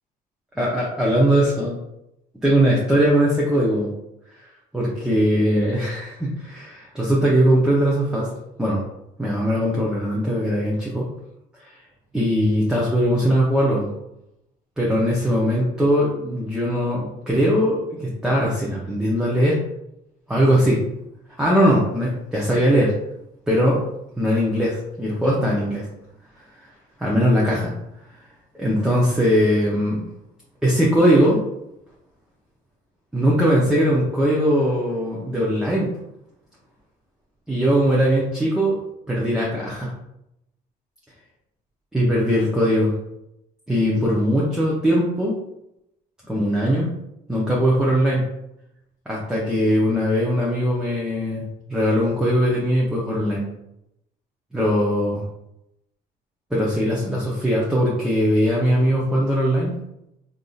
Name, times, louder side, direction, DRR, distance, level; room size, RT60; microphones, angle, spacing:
voice 1, 0.6-1.8 2.4-3.9 4.4-4.5 4.7-8.3 8.6-8.8 9.2-11.1 11.6-11.7 12.1-13.9 14.8-19.6 20.3-20.8 21.4-22.9 23.5-23.8 24.2-25.9 26.4-26.5 27.0-27.7 28.5-30.0 30.6-31.4 33.1-35.9 37.5-38.8 39.1-39.9 41.9-42.9 43.7-45.4 46.3-46.9 47.3-48.2 49.1-53.5 54.5-55.2 56.5-59.7, equal, 5° right, -5 dB, 0.6 m, -20 dB
3.5 x 2.6 x 2.3 m, 0.84 s
cardioid pair, 110°, 17 cm